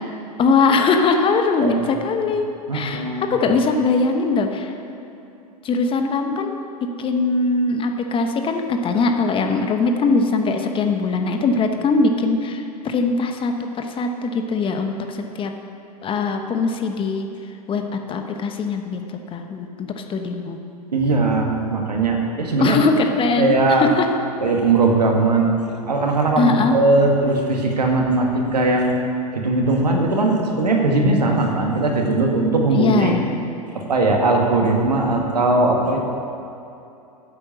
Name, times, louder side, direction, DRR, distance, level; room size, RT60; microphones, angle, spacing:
voice 1, 0.4-2.5 2.7-4.7 5.6-15.5 16.0-17.3 17.7-17.8 18.1-20.6 22.6-24.1 26.4-26.8 32.7-33.3, left 3 dB, 25° left, 5 dB, 1.1 m, -21 dB
voice 2, 2.7-3.6 20.9-22.8 23.4-23.9 24.4-25.5 25.8-28.9 29.3-33.1 33.7-36.0, right 2 dB, 85° right, 1 dB, 1.9 m, -19 dB
10.0 x 8.3 x 7.1 m, 2.8 s
hypercardioid pair, 100°, 20 cm